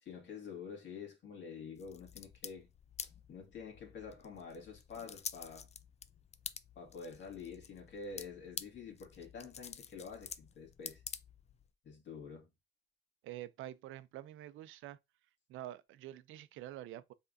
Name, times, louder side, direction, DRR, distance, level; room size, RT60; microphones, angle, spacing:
voice 1, 0.0-2.7 3.0-5.7 6.8-11.0 11.8-12.5, left 5 dB, 65° left, 2.1 m, -48 dB
sound 1, 1.8-11.7, left 7 dB, 35° left, 0.4 m, -49 dB
voice 2, 13.2-15.0 15.5-17.1, right 14 dB, 85° right, 0.4 m, -47 dB
5.5 x 3.6 x 2.6 m
cardioid pair, 90°, 20 cm